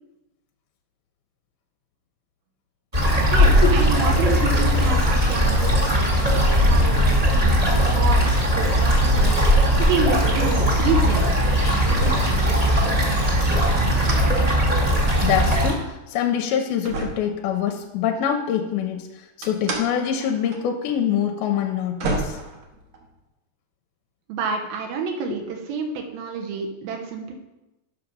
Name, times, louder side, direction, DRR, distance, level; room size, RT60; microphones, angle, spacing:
sound 1, 2.9-15.7, equal, 35° right, 0.6 m, -19 dB
voice 1, 3.3-9.4 9.8-12.4 24.3-27.3, right 4 dB, 80° right, 2 dB, 2.7 m, -29 dB
sound 2, 8.0-13.1, left 5 dB, 70° left, 2.5 m, -30 dB
sound 3, 14.0-14.3 14.6-15.6 16.1-16.2 16.9-17.9 19.4-19.9 20.2-20.6 20.8-20.9 21.6-21.7 22.0-23.2, right 3 dB, 60° right, 1.9 m, -31 dB
voice 2, 15.2-19.1 19.4-22.4, left 9 dB, 90° left, 4 dB, 2.5 m, -24 dB
8.2 x 5.9 x 5.4 m, 1.0 s
omnidirectional pair, 4.3 m